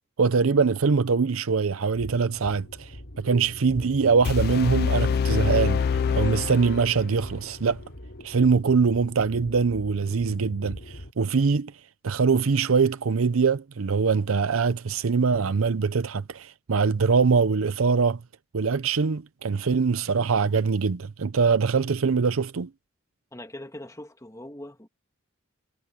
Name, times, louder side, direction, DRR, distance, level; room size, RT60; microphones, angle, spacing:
voice 1, 0.2-5.8 6.1-7.8 8.2-11.7 12.0-18.2 18.5-22.7, right 5 dB, 90° right, 0.6 m, -23 dB
sound 1, 2.0-11.1, equal, 65° left, 3.5 m, -42 dB
sound 2, 4.2-7.2, left 6 dB, 50° left, 0.3 m, -25 dB
voice 2, 23.3-24.9, left 1 dB, 15° left, 1.8 m, -41 dB
head